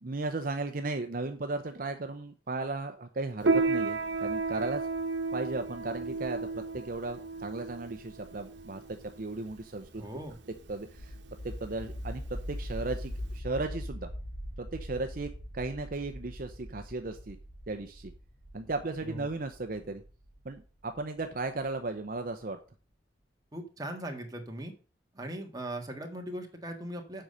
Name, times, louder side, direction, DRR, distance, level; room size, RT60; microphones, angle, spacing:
voice 1, 0.0-4.8 5.3-10.0 10.7-11.1 11.4-12.2 12.5-14.1 14.6-17.4 17.7-18.1 18.5-20.0 20.4-22.6, right 3 dB, 50° right, 7 dB, 0.7 m, -36 dB
Piano, 3.4-13.4, right 3 dB, 85° right, 1.1 m, -33 dB
voice 2, 10.0-10.4 19.0-19.2 23.5-24.7 25.1-27.2, right 1 dB, 20° right, 3 dB, 1.6 m, -39 dB
sound 1, 11.0-21.7, equal, 65° left, 3.4 m, -42 dB
7.7 x 5.6 x 6.5 m, 0.37 s
head